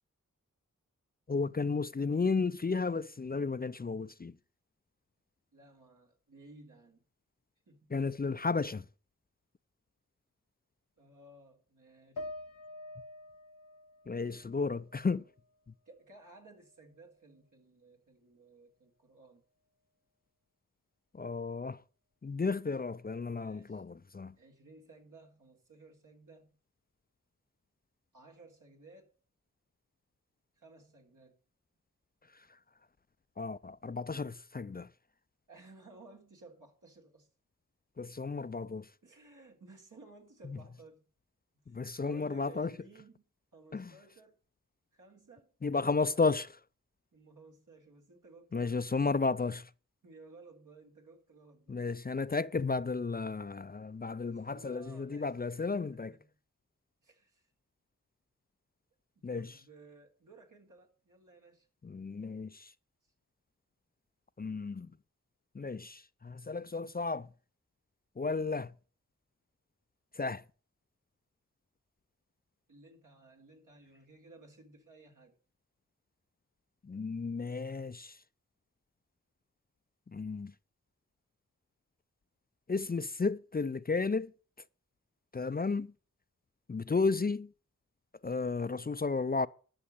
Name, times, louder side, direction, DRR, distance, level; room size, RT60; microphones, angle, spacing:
voice 1, 1.3-4.3 7.9-8.8 14.1-15.2 21.1-21.8 22.2-24.3 33.4-34.9 38.0-38.9 40.5-40.6 41.7-42.7 43.7-43.9 45.6-46.5 48.5-49.7 51.7-56.1 59.2-59.5 61.8-62.7 64.4-64.9 65.5-67.3 68.2-68.7 70.1-70.4 76.8-78.2 80.1-80.5 82.7-84.3 85.3-85.9 86.7-87.5 88.2-89.5, left 4 dB, 30° left, 0.5 m, -33 dB
voice 2, 5.5-7.0 7.7-7.9 11.0-12.3 15.9-19.5 23.3-23.8 24.4-26.6 28.1-29.1 30.6-31.4 35.5-37.3 39.0-41.0 41.7-43.3 43.5-44.4 44.9-45.5 45.9-46.2 47.1-49.1 50.0-51.8 54.3-56.4 57.0-57.4 59.2-61.7 72.7-75.4, right 3 dB, 70° right, 3.6 m, -57 dB
sound 1, 12.2-15.6 16.0-17.0, left 1 dB, 85° left, 0.9 m, -48 dB
11.5 x 6.4 x 8.8 m
cardioid pair, 45°, 32 cm